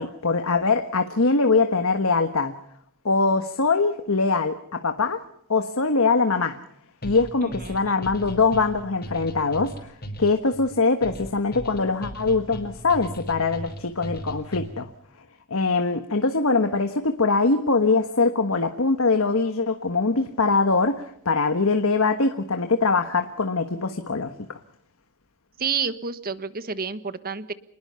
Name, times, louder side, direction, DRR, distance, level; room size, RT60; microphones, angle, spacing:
voice 1, 0.0-2.5 3.0-5.2 5.5-6.6 7.0-9.9 10.2-14.9 15.5-24.6, left 3 dB, 65° left, 8 dB, 1.4 m, -22 dB
sound 1, 7.0-14.9, equal, 45° left, 5.2 m, -37 dB
voice 2, 7.4-7.9 25.6-27.5, right 5 dB, 40° right, 13 dB, 1.3 m, -30 dB
28.0 x 20.5 x 5.7 m, 0.72 s
head